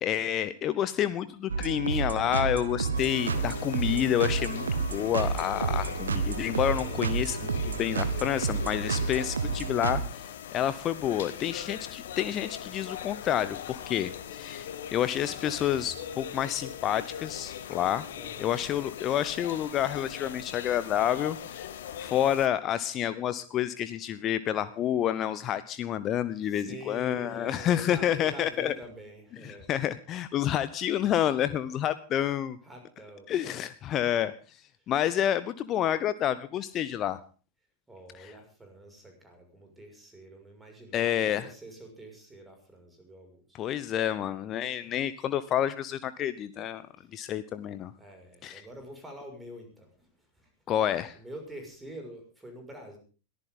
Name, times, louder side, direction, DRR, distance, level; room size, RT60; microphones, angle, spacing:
voice 1, 0.0-4.6 4.9-10.2 10.5-18.1 18.4-21.7 22.0-28.7 29.4-32.6 33.3-34.6 34.9-37.2 38.2-38.3 40.9-41.5 43.5-46.9 47.1-47.9 48.4-48.6 50.7-51.2, left 10 dB, 30° left, 14 dB, 0.9 m, -29 dB
sound 1, 1.5-10.0, right 4 dB, 70° right, 1.5 m, -30 dB
sound 2, 2.9-22.5, left 9 dB, 60° left, 1.5 m, -41 dB
voice 2, 6.8-7.1 18.1-18.6 26.4-29.7 32.6-33.3 37.9-43.6 47.0-47.1 48.0-50.1 50.4-50.5 51.1-53.0, right 1 dB, 10° right, 4 dB, 6.2 m, -46 dB
21.5 x 14.5 x 3.9 m, 0.36 s
figure-of-eight pair, 90°, 0 cm